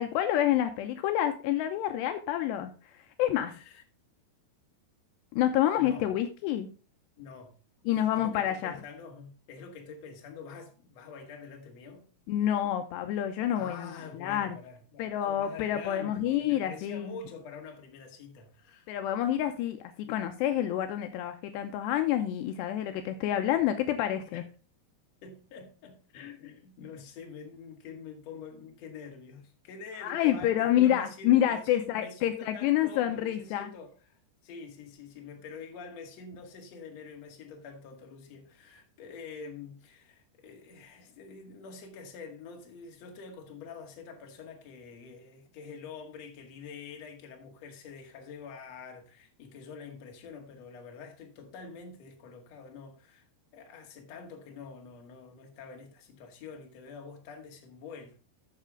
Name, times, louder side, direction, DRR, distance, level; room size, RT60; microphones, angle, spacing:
voice 1, 0.0-3.6 5.3-6.7 7.9-8.7 12.3-14.6 15.0-17.1 18.9-24.4 30.0-33.7, left 11 dB, 80° left, 2.7 m, -28 dB
voice 2, 3.5-3.8 5.7-6.1 7.2-7.6 7.9-12.1 13.5-19.0 24.3-24.4 25.2-53.3 53.5-58.2, left 5 dB, 50° left, 2.4 m, -46 dB
12.5 x 6.6 x 3.7 m
omnidirectional pair, 5.2 m